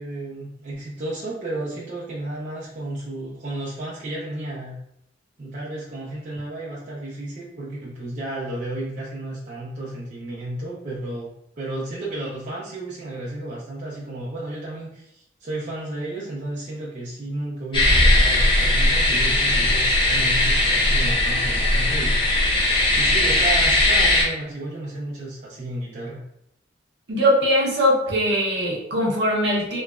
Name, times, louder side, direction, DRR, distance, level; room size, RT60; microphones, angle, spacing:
voice 1, 0.0-4.8 5.4-22.2 22.9-26.2, right 2 dB, 40° right, -6 dB, 0.5 m, -32 dB
sound 1, 17.7-24.2, left 1 dB, 25° left, 0.6 m, -19 dB
voice 2, 27.1-29.8, equal, 65° right, -3 dB, 0.8 m, -21 dB
3.0 x 2.4 x 2.3 m, 0.76 s
head